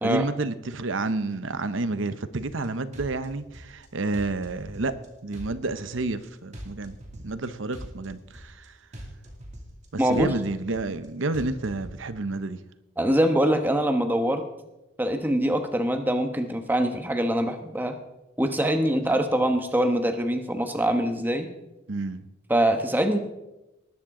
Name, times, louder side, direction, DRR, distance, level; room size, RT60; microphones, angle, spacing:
voice 1, 0.0-4.9 5.2-7.0 7.2-8.6 9.9-12.6 19.1-19.2 21.9-22.2, right 3 dB, 65° right, 0.8 m, -30 dB
sound 1, 2.3-2.7 2.9-3.9 4.1-5.1 5.3-6.3 6.5-7.5 7.7-8.7 8.9-9.9 10.1-11.1 11.3-11.9, equal, 35° right, 2.5 m, -42 dB
voice 2, 10.0-10.3 13.0-14.4 15.0-18.0 18.4-21.5 22.5-23.2, right 1 dB, 10° right, 1.0 m, -24 dB
19.0 x 12.0 x 3.8 m
head